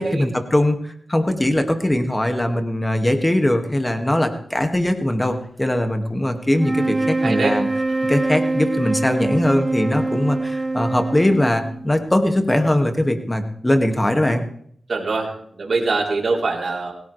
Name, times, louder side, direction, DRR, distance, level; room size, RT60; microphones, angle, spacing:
voice 1, 0.0-7.7 8.1-14.4, left 1 dB, 20° left, 5 dB, 2.2 m, -20 dB
sound 1, 6.5-12.0, right 2 dB, 30° right, 1.1 m, -24 dB
voice 2, 7.2-7.5 14.9-15.3 15.6-16.9, right 3 dB, 65° right, -1 dB, 4.1 m, -23 dB
18.0 x 16.5 x 3.4 m, 0.63 s
cardioid pair, 55°, 0 cm